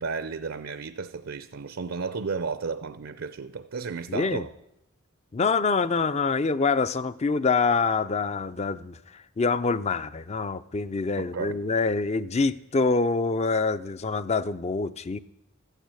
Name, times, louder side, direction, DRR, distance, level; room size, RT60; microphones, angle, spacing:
voice 1, 0.0-4.5 11.2-11.5, right 4 dB, 65° right, 0.5 m, -33 dB
voice 2, 4.1-4.5 5.3-15.2, left 4 dB, 30° left, 0.4 m, -26 dB
13.5 x 9.1 x 8.3 m
head